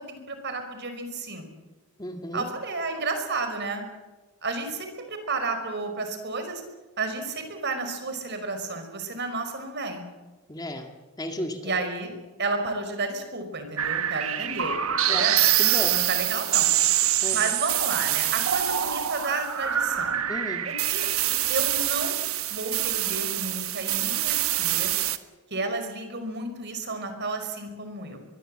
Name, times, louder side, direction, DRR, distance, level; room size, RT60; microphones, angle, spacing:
voice 1, 0.1-1.5 2.3-3.9 4.4-6.6 7.0-10.0 11.6-12.1 12.4-15.5 15.7-16.7 17.3-20.2 20.6-21.1 21.5-22.2 22.5-25.0 25.5-28.2, right 3 dB, 50° right, 7 dB, 5.2 m, -32 dB
voice 2, 2.0-2.5 10.5-10.9 11.2-11.6 15.1-15.3 15.6-15.9 17.2-17.4 20.3-20.6, left 1 dB, 20° left, 4 dB, 2.0 m, -33 dB
sound 1, 13.8-25.2, right 12 dB, 70° right, 1.4 m, -25 dB
23.5 x 22.0 x 7.8 m, 1.2 s
head